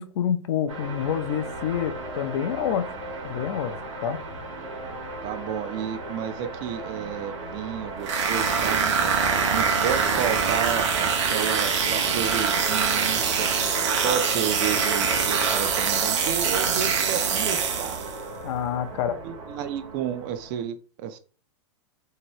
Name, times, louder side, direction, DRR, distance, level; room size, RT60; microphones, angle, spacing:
voice 1, 0.0-2.9 3.2-3.7 4.0-4.2 18.4-19.2, left 9 dB, 65° left, 0.5 m, -27 dB
sound 1, 0.7-20.6, right 3 dB, 90° right, 1.2 m, -35 dB
voice 2, 5.2-8.9 9.5-13.5 14.0-18.1 19.2-21.2, right 9 dB, 40° right, 0.4 m, -31 dB
sound 2, 8.0-18.2, right 6 dB, 65° right, 0.8 m, -24 dB
2.8 x 2.6 x 3.0 m
hypercardioid pair, 135°, 16 cm